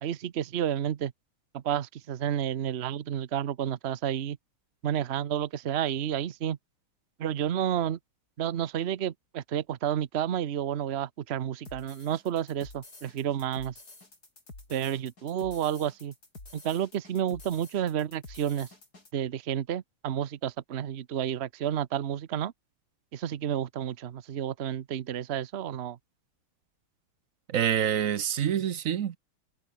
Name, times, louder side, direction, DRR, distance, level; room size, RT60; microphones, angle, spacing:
voice 1, 0.0-1.1 1.5-4.4 4.8-6.6 7.2-8.0 8.4-13.7 14.7-16.1 16.5-18.7 19.1-22.5 23.1-26.0, right 10 dB, 75° right, 0.5 m, -30 dB
sound 1, 11.7-19.1, left 2 dB, 45° left, 6.9 m, -50 dB
voice 2, 27.5-29.2, right 9 dB, 55° right, 1.0 m, -26 dB
omnidirectional pair, 2.3 m